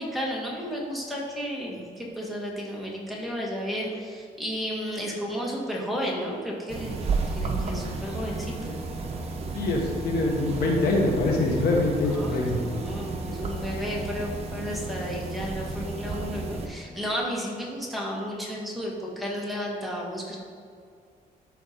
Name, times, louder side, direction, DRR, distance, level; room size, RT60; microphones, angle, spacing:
voice 1, 0.0-8.8 12.1-20.4, equal, ahead, -4 dB, 1.7 m, -33 dB
sound 1, 6.7-16.7, right 3 dB, 40° right, 1.2 m, -32 dB
voice 2, 9.5-12.6, left 2 dB, 80° left, 0 dB, 1.6 m, -24 dB
12.5 x 4.6 x 4.3 m, 2.3 s
cardioid pair, 125°, 16 cm